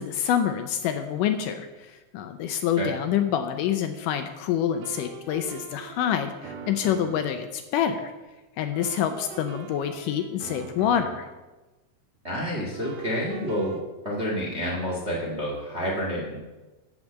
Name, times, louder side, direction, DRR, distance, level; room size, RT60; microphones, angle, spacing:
voice 1, 0.0-8.1 8.6-11.3, left 9 dB, 75° left, 7 dB, 2.1 m, -27 dB
sound 1, 3.2-3.4 4.7-7.4 8.7-11.4 12.7-13.8, right 6 dB, 75° right, 1.6 m, -42 dB
voice 2, 12.2-13.8 14.0-16.4, equal, 30° right, -3 dB, 1.2 m, -29 dB
13.0 x 4.8 x 7.4 m, 1.1 s
omnidirectional pair, 4.1 m